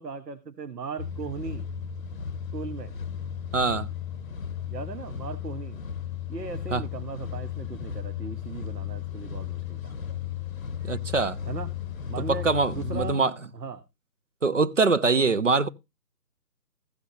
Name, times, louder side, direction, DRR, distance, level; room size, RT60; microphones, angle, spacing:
voice 1, 0.0-1.7 2.5-2.9 4.7-5.8 6.3-10.0 11.5-11.8 12.1-13.2 13.5-13.8, right 4 dB, 70° right, 1.1 m, -37 dB
sound 1, 1.0-13.1, left 9 dB, 55° left, 0.8 m, -35 dB
voice 2, 3.5-3.9 6.7-6.8 10.8-11.4 12.3-13.3 14.4-15.7, right 4 dB, 50° right, 0.5 m, -23 dB
14.5 x 7.8 x 2.8 m
figure-of-eight pair, 170°, 50 cm